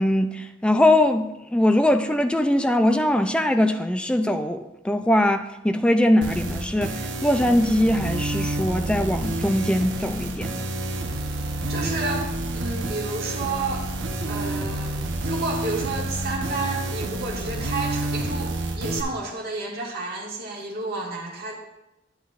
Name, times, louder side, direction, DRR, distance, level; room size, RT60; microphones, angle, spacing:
voice 1, 0.0-10.6, left 1 dB, 5° left, 0.4 m, -21 dB
sound 1, 6.2-19.0, right 1 dB, 75° right, 1.0 m, -29 dB
voice 2, 11.7-13.9 14.2-15.0 15.2-21.5, right 3 dB, 55° right, 1.9 m, -31 dB
10.5 x 9.9 x 2.5 m
head